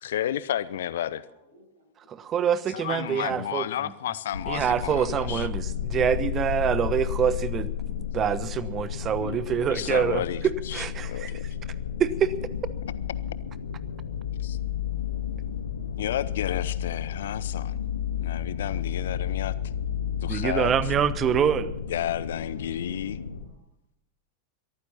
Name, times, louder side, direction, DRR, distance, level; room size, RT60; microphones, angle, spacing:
voice 1, 0.0-1.2 2.7-5.5 9.2-9.4 9.7-10.4 10.7-11.4 14.4-14.6 16.0-17.7 18.2-19.5 20.2-20.7 21.9-23.2, left 11 dB, 60° left, 0.7 m, -31 dB
voice 2, 1.2-1.9 2.2-3.6 22.5-22.9 23.4-23.6, right 2 dB, 55° right, 7.6 m, -57 dB
voice 3, 2.1-3.9 4.5-11.5 12.0-12.3 20.3-21.7, right 8 dB, 25° right, 1.1 m, -26 dB
sound 1, 4.3-23.4, left 9 dB, 75° left, 2.2 m, -32 dB
23.0 x 14.5 x 4.2 m
figure-of-eight pair, 90°, 0 cm